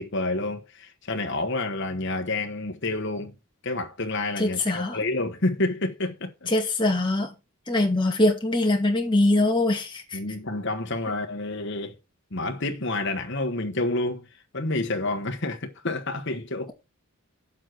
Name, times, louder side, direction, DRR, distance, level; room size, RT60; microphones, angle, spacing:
voice 1, 0.0-3.3 3.6-6.5 10.1-12.0 12.3-14.3 14.5-16.7, left 2 dB, 55° left, 1.3 m, -29 dB
voice 2, 4.4-5.0 6.5-7.3 7.7-10.2, left 2 dB, 20° left, 2.0 m, -23 dB
7.7 x 7.5 x 4.5 m
head